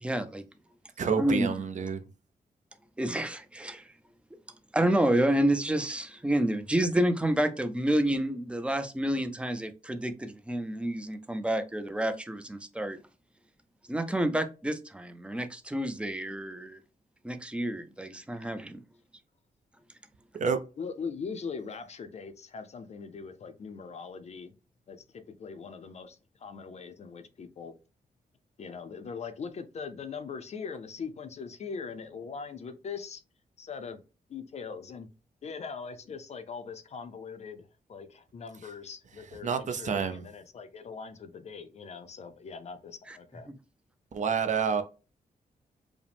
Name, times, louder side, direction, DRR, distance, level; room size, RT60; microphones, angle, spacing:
voice 1, 0.0-0.4 1.2-1.5 3.0-3.9 4.7-13.0 13.9-16.8 17.2-18.8 43.1-43.2, right 1 dB, 5° right, 0.4 m, -29 dB
voice 2, 1.0-2.0 20.4-20.6 39.4-40.2 44.1-44.8, right 6 dB, 55° right, 0.6 m, -28 dB
voice 3, 20.8-24.6 24.9-27.8 28.6-33.2 33.6-34.0 34.3-35.1 35.4-43.5, left 5 dB, 45° left, 0.5 m, -41 dB
4.9 x 2.1 x 3.3 m
wide cardioid pair, 170°, 15 cm